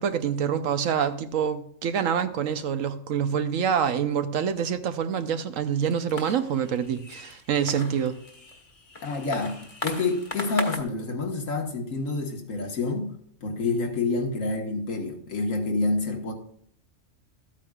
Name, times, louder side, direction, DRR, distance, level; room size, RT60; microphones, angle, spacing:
voice 1, 0.0-8.2, right 8 dB, 90° right, 1.2 m, -26 dB
sound 1, 5.8-10.8, left 3 dB, 30° left, 1.3 m, -38 dB
voice 2, 9.0-13.2 13.4-16.3, left 3 dB, 85° left, 1.9 m, -28 dB
13.5 x 8.8 x 2.4 m
omnidirectional pair, 1.3 m